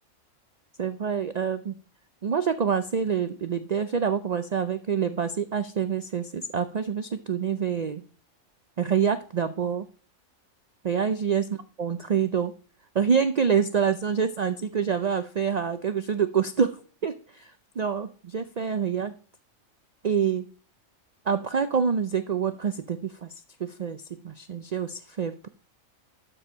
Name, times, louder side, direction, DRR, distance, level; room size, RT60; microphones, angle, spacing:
voice 1, 0.8-1.7 2.2-8.0 8.8-9.9 10.8-11.5 11.8-12.5 12.9-19.1 20.0-20.5 21.3-23.3 23.6-25.5, right 7 dB, 85° right, 10 dB, 0.3 m, -26 dB
12.5 x 4.4 x 5.1 m, 0.40 s
omnidirectional pair, 1.4 m